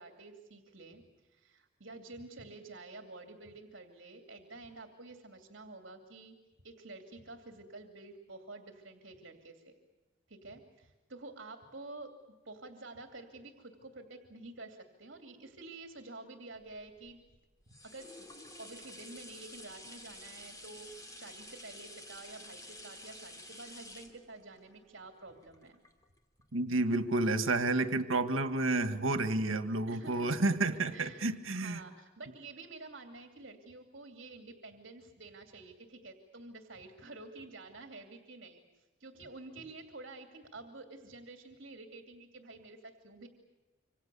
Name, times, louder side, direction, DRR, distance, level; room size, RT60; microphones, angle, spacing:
voice 1, 0.0-6.3 6.6-9.7 10.3-12.1 12.4-17.2 17.8-18.3 18.6-25.8 29.9-30.5 30.9-43.3, right 2 dB, 60° right, 5 dB, 2.7 m, -50 dB
sound 1, 16.7-26.4 26.9-27.0, left 1 dB, 15° left, 2.6 m, -51 dB
voice 2, 26.5-31.8, right 2 dB, 80° right, 10 dB, 1.7 m, -30 dB
27.5 x 25.5 x 7.0 m, 1.1 s
head